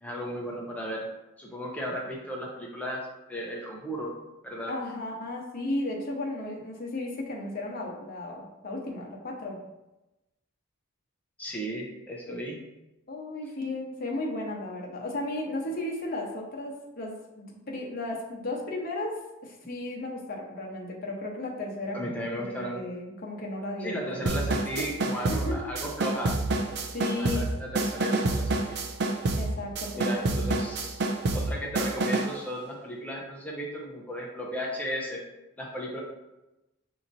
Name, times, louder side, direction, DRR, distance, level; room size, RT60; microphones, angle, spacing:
voice 1, 0.0-1.1 1.4-4.1 4.4-4.8 11.4-12.6 21.9-22.8 23.8-26.3 27.2-28.8 30.0-31.0 31.3-35.2 35.6-36.0, equal, 5° left, -3 dB, 0.6 m, -35 dB
voice 2, 4.7-9.6 12.3-12.6 13.1-19.1 19.4-24.2 25.1-25.6 26.9-27.5 27.7-28.0 29.4-30.5, left 2 dB, 45° left, -1 dB, 0.9 m, -35 dB
sound 1, 24.3-32.4, right 2 dB, 55° right, 0.4 m, -28 dB
6.0 x 2.9 x 2.6 m, 0.99 s
head